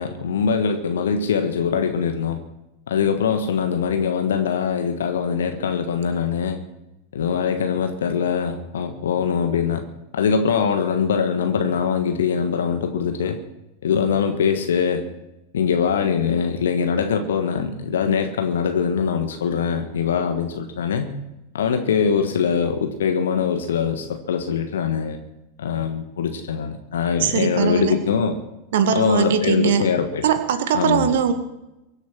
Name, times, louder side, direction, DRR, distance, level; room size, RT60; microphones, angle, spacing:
voice 1, 0.0-2.4 2.9-6.6 7.1-9.8 10.1-13.4 13.8-15.1 15.5-21.1 21.5-25.2 25.6-28.4 28.9-30.2 30.7-31.2, left 6 dB, 65° left, 6 dB, 1.5 m, -22 dB
voice 2, 27.2-28.0 28.7-29.8 30.2-31.3, right 7 dB, 55° right, 10 dB, 1.8 m, -20 dB
23.0 x 8.0 x 6.3 m, 0.93 s
figure-of-eight pair, 90°, 0 cm